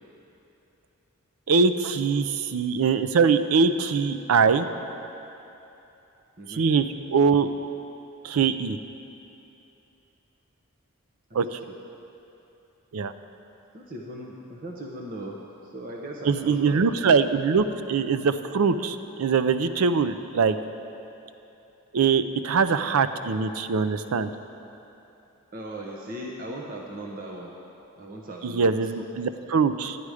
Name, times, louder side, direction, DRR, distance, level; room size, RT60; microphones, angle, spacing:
voice 1, 1.5-4.7 6.5-7.5 8.2-8.8 11.3-11.6 12.9-13.1 16.2-20.6 21.9-24.3 28.4-30.0, right 5 dB, 80° right, 11 dB, 0.5 m, -22 dB
voice 2, 6.4-6.7 11.7-11.8 13.7-16.9 25.5-27.6 28.0-28.9, right 1 dB, 40° right, -1 dB, 0.8 m, -38 dB
11.5 x 9.5 x 4.9 m, 2.9 s
head